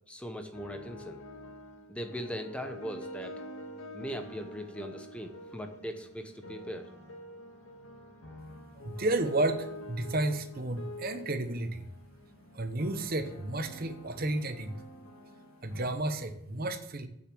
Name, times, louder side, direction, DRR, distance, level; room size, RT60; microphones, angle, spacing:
voice 1, 0.1-1.2 1.9-3.3 3.9-6.9, equal, 5° left, 6 dB, 0.8 m, -39 dB
sound 1, 0.5-15.9, left 1 dB, 85° left, 1.7 m, -47 dB
voice 2, 8.8-11.8 12.5-14.7 15.6-17.1, right 2 dB, 45° right, 9 dB, 0.9 m, -32 dB
9.0 x 6.8 x 7.6 m, 0.79 s
head